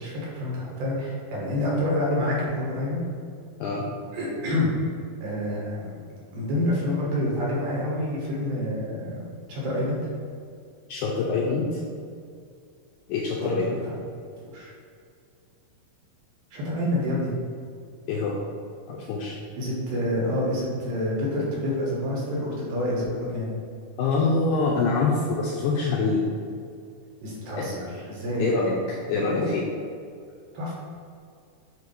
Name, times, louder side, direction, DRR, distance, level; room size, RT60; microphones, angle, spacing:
voice 1, 0.0-3.0 4.1-4.7 5.2-6.0 6.3-9.2 9.5-10.0 13.4-13.9 14.5-14.7 16.5-17.3 19.6-23.5 27.2-28.4 30.5-30.7, left 1 dB, 90° right, -5 dB, 3.4 m, -28 dB
voice 2, 10.9-11.7 13.1-13.8 18.1-18.4 18.9-19.4 24.0-26.2 27.6-27.7 28.4-29.7, left 4 dB, 80° left, -3 dB, 1.8 m, -25 dB
7.8 x 2.7 x 5.3 m, 2.3 s
omnidirectional pair, 4.2 m